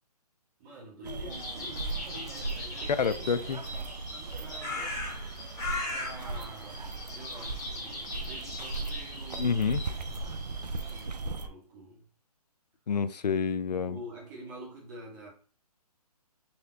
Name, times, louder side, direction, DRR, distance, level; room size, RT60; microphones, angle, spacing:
voice 1, 0.6-9.8 10.6-12.0 13.6-15.3, equal, 30° right, 1.7 m, -48 dB
sound 1, 1.0-11.5, right 3 dB, 90° right, 0.5 m, -38 dB
sound 2, 1.3-11.0, left 2 dB, 15° left, 1.3 m, -40 dB
sound 3, 2.2-5.0, left 1 dB, 70° right, 1.3 m, -54 dB
voice 2, 3.0-3.6 9.4-9.8 12.9-14.0, left 6 dB, 85° left, 0.4 m, -28 dB
4.2 x 3.2 x 2.7 m
figure-of-eight pair, 145°, 20 cm